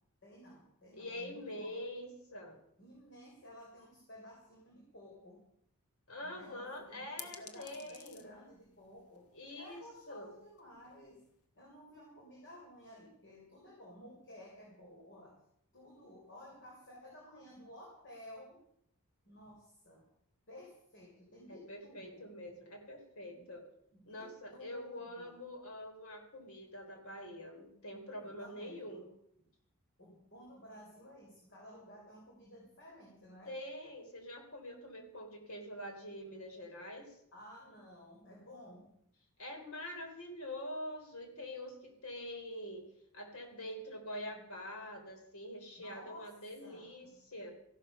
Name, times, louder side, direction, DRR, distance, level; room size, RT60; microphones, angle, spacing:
voice 1, 0.2-1.8 2.8-5.4 6.2-9.3 9.6-11.2 11.6-15.3 15.7-18.6 19.3-20.1 20.5-22.3 23.3-23.5 23.9-25.4 28.2-29.1 30.0-33.5 37.3-38.9 45.8-47.2, left 1 dB, 55° left, -2 dB, 3.8 m, -54 dB
voice 2, 0.9-2.6 6.1-8.2 9.3-10.3 21.5-23.6 24.1-29.1 33.5-37.2 39.4-47.5, left 1 dB, 70° left, 4 dB, 3.7 m, -45 dB
sound 1, 6.2-11.5, left 7 dB, 85° left, 1.4 m, -56 dB
15.0 x 12.0 x 5.5 m, 0.72 s
head